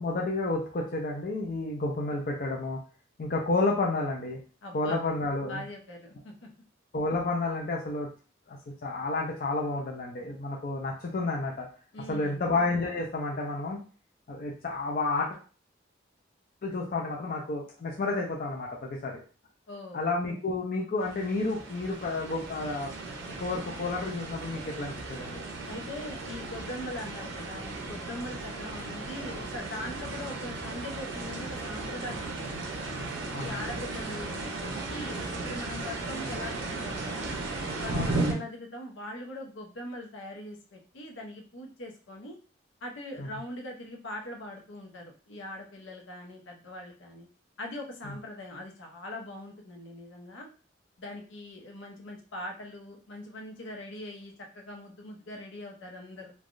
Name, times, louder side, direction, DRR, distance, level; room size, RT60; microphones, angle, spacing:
voice 1, 0.0-2.8 3.2-4.4 4.7-5.6 6.9-8.1 8.5-11.7 12.1-13.8 14.3-15.4 16.6-19.2 19.9-22.9 23.4-25.4 33.3-33.6 37.9-38.3 43.2-43.3, left 3 dB, 50° left, -2 dB, 0.5 m, -31 dB
voice 2, 4.6-5.0 5.5-6.3 11.9-12.4 19.7-20.0 25.7-32.9 33.4-37.4 37.8-42.3 42.8-47.3 47.6-50.5 51.0-56.3, left 1 dB, 80° left, 1 dB, 0.7 m, -41 dB
sound 1, 21.0-38.3, right 3 dB, 80° right, 0.6 m, -36 dB
3.3 x 2.3 x 2.5 m, 0.36 s
head